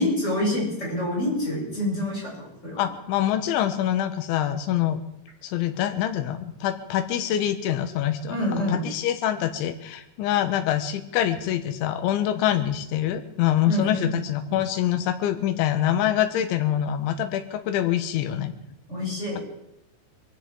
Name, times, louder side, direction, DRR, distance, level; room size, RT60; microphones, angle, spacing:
voice 1, 0.0-2.8 8.3-8.8 13.6-14.1 14.5-14.6 18.9-19.4, left 1 dB, 15° left, -5 dB, 7.4 m, -27 dB
voice 2, 2.8-5.0 5.4-18.5, left 11 dB, 85° left, 7 dB, 3.5 m, -25 dB
23.5 x 16.0 x 3.8 m, 0.84 s
omnidirectional pair, 5.3 m